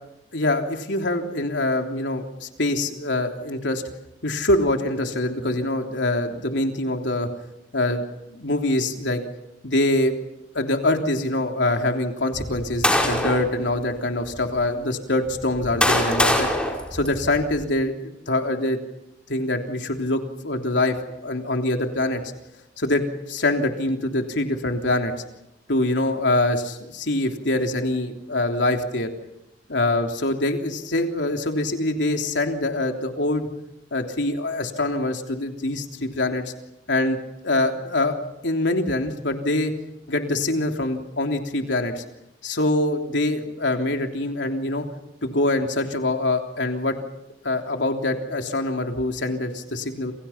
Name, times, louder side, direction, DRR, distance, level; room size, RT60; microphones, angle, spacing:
voice 1, 0.3-3.8 4.2-7.3 7.7-8.0 8.3-9.2 9.6-10.1 10.6-16.5 16.9-18.8 19.3-20.9 21.2-22.2 22.8-23.0 23.3-25.1 25.7-29.1 29.7-33.5 33.9-36.4 36.9-37.2 37.4-38.2 38.4-39.7 40.1-42.0 42.4-44.9 45.2-47.0 47.4-50.1, left 2 dB, 85° left, 3 dB, 3.3 m, -24 dB
sound 1, 12.3-13.5 14.3-14.4 15.3-17.6, left 1 dB, 5° left, 5.0 m, -23 dB
29.0 x 28.5 x 5.9 m, 0.87 s
head